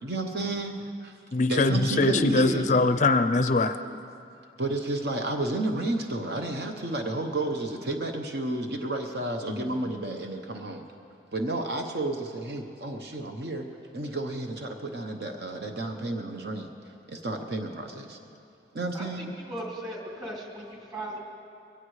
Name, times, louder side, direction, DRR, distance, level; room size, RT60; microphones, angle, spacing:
voice 1, 0.0-1.1 1.5-2.7 3.8-4.0 4.6-10.9 11.3-13.6 13.9-16.7 17.1-18.2 18.7-19.4, right 2 dB, 65° right, 4 dB, 0.9 m, -31 dB
voice 2, 1.3-3.8 9.5-9.7, left 3 dB, 45° left, 9 dB, 0.4 m, -22 dB
voice 3, 18.9-21.2, right 1 dB, 25° right, -3 dB, 2.8 m, -38 dB
22.0 x 17.0 x 3.2 m, 2.7 s
head